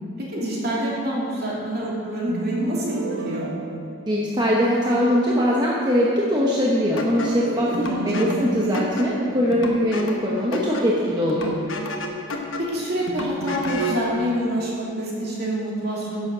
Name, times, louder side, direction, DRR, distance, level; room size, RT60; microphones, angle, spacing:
voice 1, 0.2-3.5 7.6-8.5 12.6-16.3, right 1 dB, 50° right, -5 dB, 2.7 m, -27 dB
sound 1, 2.3-4.7 7.1-10.4, right 3 dB, 70° right, 0.8 m, -32 dB
voice 2, 4.1-11.5, equal, 20° right, -4 dB, 0.9 m, -21 dB
sound 2, 7.0-14.1, left 1 dB, 70° left, 1.2 m, -31 dB
10.5 x 7.1 x 6.1 m, 2.8 s
head